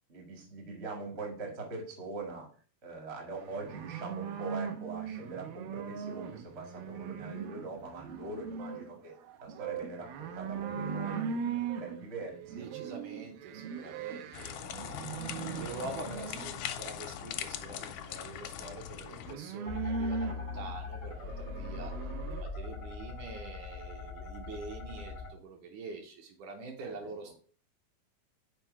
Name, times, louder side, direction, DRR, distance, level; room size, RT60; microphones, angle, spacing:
voice 1, 0.1-2.5 2.8-9.1 9.4-12.7 26.8-27.0 27.2-27.3, right 3 dB, 45° right, 0 dB, 0.8 m, -43 dB
sound 1, 3.4-16.5 19.0-22.4, right 6 dB, 90° right, 2.6 m, -39 dB
voice 2, 12.6-14.9 15.3-21.9 22.3-27.3, right 3 dB, 70° right, 2 dB, 2.1 m, -45 dB
sound 2, 14.3-19.3, left 10 dB, 80° left, 2.0 m, -41 dB
sound 3, 19.6-25.3, left 4 dB, 65° left, 0.8 m, -40 dB
6.1 x 4.6 x 4.2 m, 0.42 s
omnidirectional pair, 4.1 m